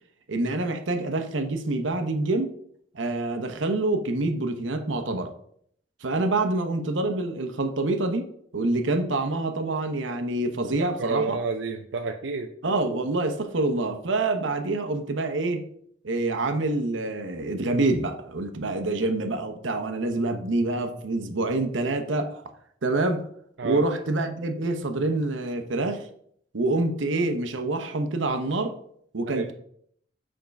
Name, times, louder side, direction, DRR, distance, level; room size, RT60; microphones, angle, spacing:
voice 1, 0.3-2.5 2.9-5.3 6.0-8.3 8.5-11.4 12.6-15.7 16.0-22.4 22.8-23.2 23.6-26.1 26.5-28.8 29.1-29.5, right 2 dB, 90° right, 0.9 m, -26 dB
voice 2, 10.8-12.5 23.6-23.8 29.3-29.5, right 4 dB, 70° right, 0.5 m, -30 dB
7.0 x 3.7 x 5.2 m
head